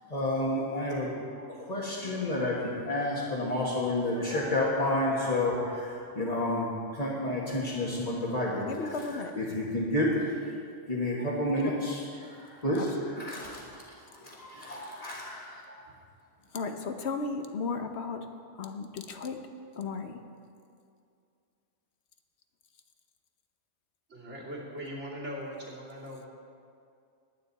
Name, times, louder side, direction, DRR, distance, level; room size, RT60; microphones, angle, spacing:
voice 1, 0.1-9.1 9.3-10.1 10.9-13.6 13.9-15.7, left 1 dB, 30° left, -6 dB, 1.8 m, -30 dB
voice 2, 8.6-9.3 11.6-11.7 12.7-13.1 16.5-18.3 18.6-19.4 19.8-20.2, left 4 dB, 60° left, 6 dB, 1.2 m, -35 dB
voice 3, 24.1-26.3, equal, 70° right, -5 dB, 3.0 m, -40 dB
21.0 x 9.3 x 4.2 m, 2.4 s
omnidirectional pair, 1.3 m